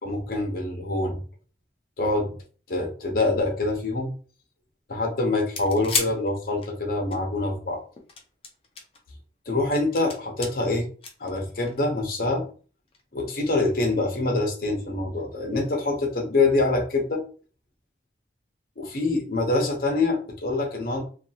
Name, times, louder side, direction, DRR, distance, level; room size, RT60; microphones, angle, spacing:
voice 1, 0.0-1.2 2.0-2.3 2.7-4.1 4.9-7.8 9.5-10.9 11.2-12.4 13.1-17.2 18.8-21.1, left 2 dB, 50° left, 2 dB, 0.8 m, -25 dB
sound 1, 5.4-7.2 8.0-9.0 9.5-10.5 11.0-11.9 12.9-13.0, left 5 dB, 30° left, 0.5 m, -31 dB
2.9 x 2.3 x 2.7 m, 0.39 s
head